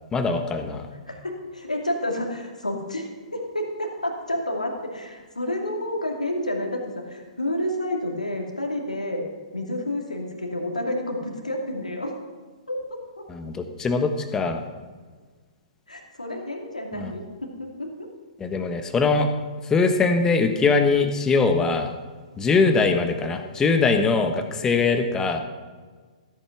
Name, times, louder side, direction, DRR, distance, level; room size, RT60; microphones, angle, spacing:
voice 1, 0.1-0.9 13.3-14.6 17.0-17.1 18.4-19.3 19.7-21.9 22.4-25.4, left 4 dB, 15° left, 7 dB, 1.2 m, -22 dB
voice 2, 1.1-9.2 9.5-12.1 12.7-13.0 15.9-17.9, left 1 dB, 90° left, 1 dB, 2.5 m, -30 dB
14.5 x 8.6 x 5.9 m, 1.5 s
figure-of-eight pair, 120°, 4 cm